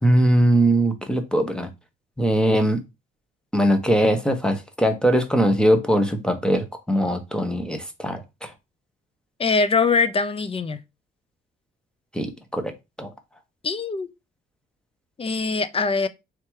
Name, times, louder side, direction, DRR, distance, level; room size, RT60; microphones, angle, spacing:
voice 1, 0.0-1.7 2.2-2.8 3.5-8.5 12.1-13.1, right 1 dB, 5° left, 1.0 m, -21 dB
voice 2, 9.4-10.8 13.6-14.1 15.2-16.1, left 4 dB, 30° left, 0.5 m, -22 dB
3.5 x 2.9 x 4.7 m
cardioid pair, 90°, 20 cm